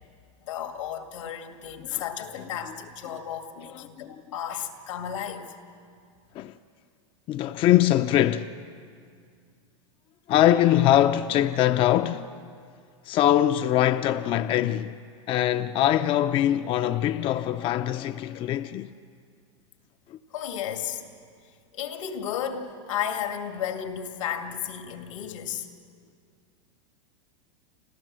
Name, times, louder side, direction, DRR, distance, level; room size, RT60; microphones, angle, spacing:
voice 1, 0.4-5.5 20.3-21.1 21.7-25.7, left 9 dB, 80° left, 2.1 m, -33 dB
voice 2, 7.3-8.5 10.3-12.4 13.0-14.9 15.3-18.9 20.1-20.2, left 12 dB, 35° left, 0.5 m, -22 dB
28.5 x 13.0 x 7.5 m
supercardioid pair, 125°, 16 cm